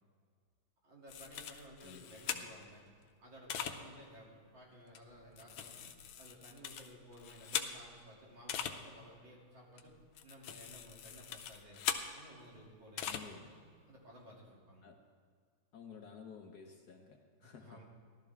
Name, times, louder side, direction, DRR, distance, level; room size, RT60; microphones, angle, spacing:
voice 1, 0.8-2.9 3.2-5.9 6.2-10.0 10.2-11.8 12.1-13.6 13.9-14.8 17.4-17.8, equal, 60° right, -4 dB, 3.3 m, -56 dB
sound 1, 1.1-2.7 3.5-3.7 4.9-8.0 8.5-8.7 9.8-12.1 13.0-13.2, left 9 dB, 80° left, 1.6 m, -41 dB
voice 2, 13.0-13.5 14.8-15.0 15.7-17.8, left 6 dB, 60° left, 2 dB, 1.2 m, -53 dB
17.0 x 12.0 x 3.5 m, 2.1 s
omnidirectional pair, 2.3 m